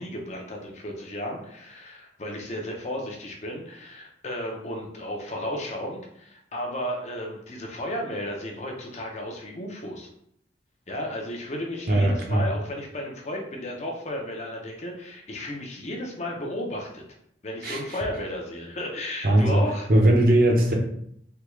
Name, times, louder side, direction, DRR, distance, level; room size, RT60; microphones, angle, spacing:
voice 1, 0.0-10.1 10.9-17.0 17.4-19.9, left 1 dB, 40° left, 0 dB, 0.6 m, -34 dB
voice 2, 11.9-12.4 17.6-18.0 19.2-19.6 19.9-20.7, right 1 dB, 55° right, 0 dB, 0.6 m, -19 dB
3.4 x 2.3 x 3.0 m, 0.71 s
head